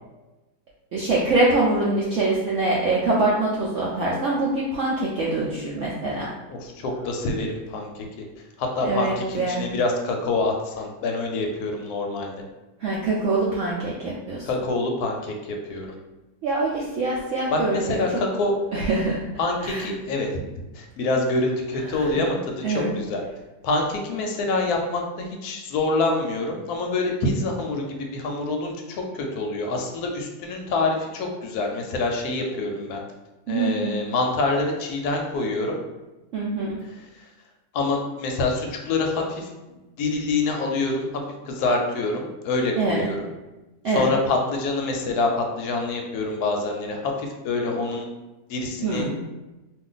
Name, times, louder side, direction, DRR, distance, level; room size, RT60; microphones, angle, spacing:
voice 1, 0.9-6.3 8.8-9.7 12.8-14.4 16.4-18.0 18.7-19.2 19.6-19.9 21.9-22.2 22.6-22.9 33.5-34.0 36.3-36.8 42.8-43.1 43.8-44.1 48.8-49.3, right 2 dB, 80° right, -5 dB, 0.6 m, -24 dB
voice 2, 6.5-8.1 8.6-12.3 14.4-16.0 17.5-18.8 19.4-20.3 20.5-23.2 23.6-33.0 33.5-35.8 36.8-37.3 37.7-41.1 41.4-43.2 43.9-48.1 48.5-49.1, left 2 dB, 70° left, 2 dB, 1.0 m, -26 dB
2.5 x 2.5 x 3.8 m, 1.1 s
omnidirectional pair, 1.8 m